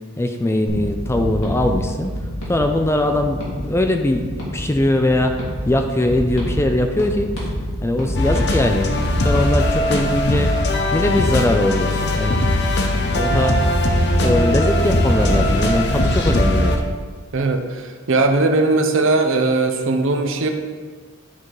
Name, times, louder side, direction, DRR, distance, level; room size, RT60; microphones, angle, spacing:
voice 1, 0.2-2.1 2.5-5.4 5.7-7.5 7.8-8.9 9.2-10.5 10.9-12.4 13.1-13.6 14.2-16.9, left 1 dB, 10° left, 5 dB, 0.4 m, -20 dB
sound 1, 0.7-16.5, equal, 70° left, 2.3 m, -27 dB
sound 2, 8.1-16.8, left 1 dB, 50° left, 0.8 m, -20 dB
voice 2, 17.3-20.5, right 3 dB, 60° right, 5 dB, 0.7 m, -19 dB
9.8 x 4.0 x 4.7 m, 1.5 s
head